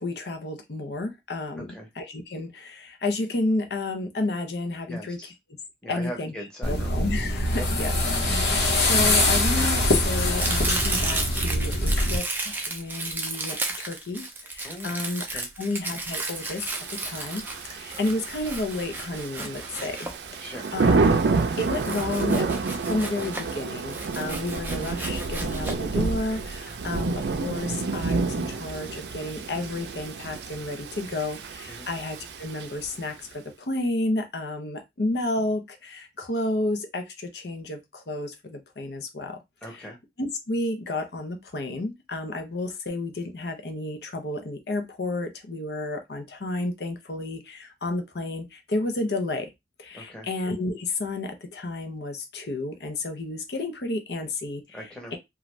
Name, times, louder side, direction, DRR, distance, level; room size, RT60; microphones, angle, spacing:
voice 1, 0.0-1.7 2.0-5.2 5.9-6.3 6.7-7.9 8.2-8.5 8.9-12.2 12.7-13.6 13.9-14.2 14.6-16.6 17.0-17.4 17.8-20.1 20.7-21.2 21.6-22.4 22.9-33.1 33.7-37.0 37.3-37.8 38.1-39.4 39.7-39.9 40.2-49.5 49.9-54.6 55.1-55.2, left 2 dB, 70° left, 0.7 m, -31 dB
voice 2, 4.9-5.3 5.8-6.9 7.5-7.7 14.6-15.0 15.3-15.5 20.4-20.7 26.7-26.8 31.7-31.9 39.6-40.0 49.9-50.3 54.7-55.2, equal, 5° left, 0.8 m, -40 dB
sound 1, 6.6-12.2, left 1 dB, 85° left, 1.0 m, -23 dB
Domestic sounds home sounds, 10.4-20.7 21.8-23.6 23.9-25.7, right 3 dB, 10° right, 0.4 m, -33 dB
Thunder / Rain, 16.5-33.0, right 4 dB, 75° right, 0.4 m, -29 dB
2.5 x 2.3 x 3.1 m
head